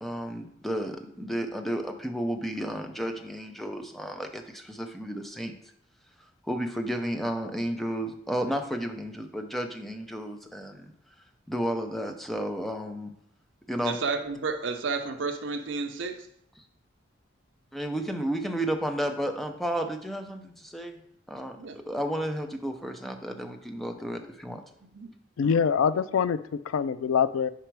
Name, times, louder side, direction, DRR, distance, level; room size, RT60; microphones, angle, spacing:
voice 1, 0.0-5.5 6.4-10.9 11.5-13.1 13.7-14.0 17.7-21.0 21.3-24.6, equal, ahead, 5 dB, 0.5 m, -32 dB
voice 2, 13.8-16.3 21.6-21.8 24.9-25.1, right 4 dB, 65° right, 7 dB, 0.6 m, -31 dB
voice 3, 25.4-27.5, left 7 dB, 90° left, 15 dB, 0.3 m, -25 dB
5.0 x 4.5 x 4.6 m, 0.73 s
head